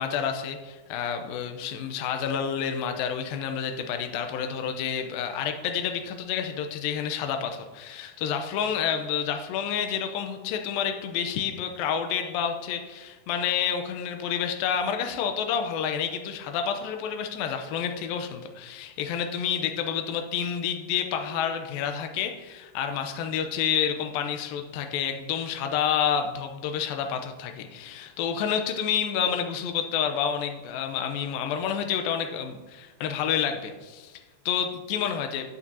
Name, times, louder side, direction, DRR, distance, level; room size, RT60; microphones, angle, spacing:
voice 1, 0.0-35.5, left 8 dB, 80° left, 6 dB, 2.2 m, -29 dB
13.0 x 8.7 x 2.8 m, 1.2 s
omnidirectional pair, 4.8 m